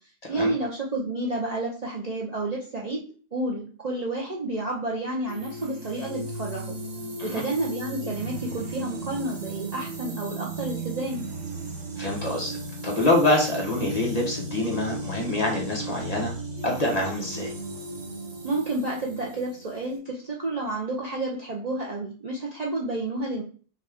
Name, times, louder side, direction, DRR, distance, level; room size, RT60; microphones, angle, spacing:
voice 1, 0.3-3.0 3.3-6.8 7.2-11.2 18.4-23.4, right 2 dB, 40° right, -4 dB, 0.6 m, -30 dB
sound 1, 5.3-20.0, right 2 dB, 60° right, 1.5 m, -35 dB
voice 2, 12.0-12.6 12.8-16.3 16.6-17.5, left 1 dB, 35° left, -2 dB, 1.1 m, -25 dB
5.7 x 2.5 x 3.5 m, 0.41 s
omnidirectional pair, 1.3 m